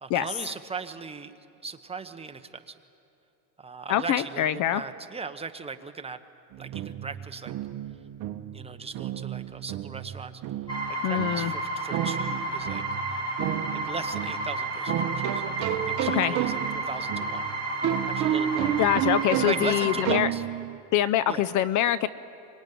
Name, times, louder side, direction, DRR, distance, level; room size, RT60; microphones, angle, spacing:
voice 1, 0.0-1.3 1.6-2.8 3.6-6.2 6.6-7.5 8.5-10.4 10.9-12.8 13.8-17.5 18.1-18.8 19.4-20.4 21.3-21.4, right 4 dB, 15° right, 7 dB, 1.1 m, -38 dB
voice 2, 3.9-4.8 11.0-11.5 16.1-16.3 18.8-20.3 20.9-22.1, left 11 dB, 45° left, 16 dB, 0.7 m, -24 dB
sound 1, 6.5-20.8, right 12 dB, 45° right, 1.2 m, -31 dB
sound 2, 10.7-20.0, right 2 dB, 10° left, 6.0 m, -31 dB
25.0 x 21.0 x 9.5 m, 2.8 s
supercardioid pair, 120°, 42 cm